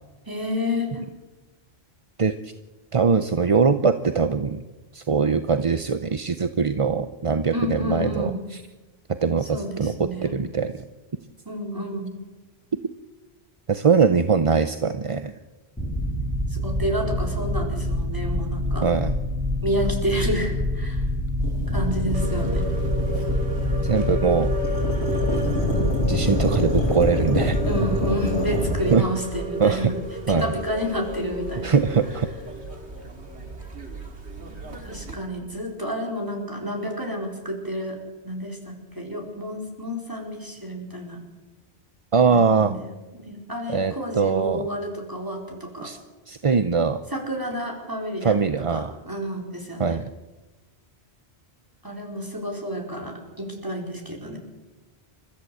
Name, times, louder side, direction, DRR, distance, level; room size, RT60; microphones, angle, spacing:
voice 1, 0.3-1.0 7.5-8.4 9.4-10.4 11.4-12.2 16.5-18.9 19.6-21.1 21.7-22.7 27.7-30.0 30.4-31.7 34.8-38.0 38.2-41.2 42.3-42.8 43.1-45.9 47.1-48.4 48.7-50.0 51.8-54.4, equal, 20° right, 0 dB, 4.7 m, -30 dB
voice 2, 2.2-2.5 2.9-4.6 4.9-8.6 9.2-10.7 13.7-15.3 18.8-19.1 23.8-24.5 26.1-27.6 28.9-29.1 29.6-29.9 30.3-30.5 31.6-32.3 42.1-42.8 43.7-44.7 45.8-46.0 46.3-47.0 48.2-48.9 49.8-50.1, right 5 dB, 35° right, 10 dB, 0.7 m, -22 dB
sound 1, 15.8-28.8, left 1 dB, 5° left, 5.3 m, -27 dB
sound 2, 21.4-29.0, left 1 dB, 30° left, 7.8 m, -27 dB
sound 3, 22.1-35.2, equal, 80° right, 2.8 m, -33 dB
29.5 x 14.0 x 7.9 m, 1.2 s
omnidirectional pair, 1.1 m